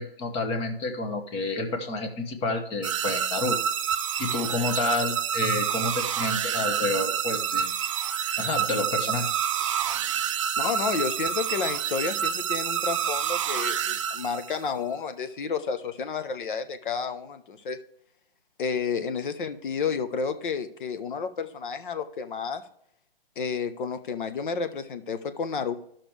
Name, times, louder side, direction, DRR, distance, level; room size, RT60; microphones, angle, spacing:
voice 1, 0.0-3.6 4.2-7.7 8.4-9.3, left 3 dB, 20° left, 5 dB, 1.1 m, -29 dB
sound 1, 2.8-14.7, right 9 dB, 35° right, 0.4 m, -28 dB
voice 2, 10.6-17.8 18.6-22.6 23.4-25.7, left 5 dB, 60° left, 11 dB, 1.0 m, -31 dB
13.0 x 5.9 x 3.4 m, 0.72 s
hypercardioid pair, 140°, 29 cm